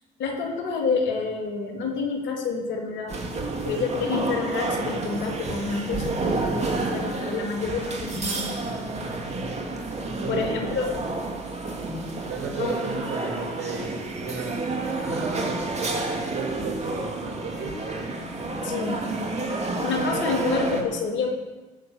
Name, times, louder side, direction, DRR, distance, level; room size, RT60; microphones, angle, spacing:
voice 1, 0.2-3.2 3.6-8.5 10.3-10.9 12.6-12.8 18.6-19.0 19.8-21.3, left 4 dB, 70° left, 1 dB, 2.7 m, -28 dB
sound 1, 3.1-20.8, right 2 dB, 35° right, 2.8 m, -30 dB
voice 2, 10.0-10.4 12.3-14.6 15.0-18.2, right 5 dB, 60° right, 0 dB, 4.7 m, -35 dB
16.5 x 6.9 x 7.2 m, 1.2 s
hypercardioid pair, 60°, 19 cm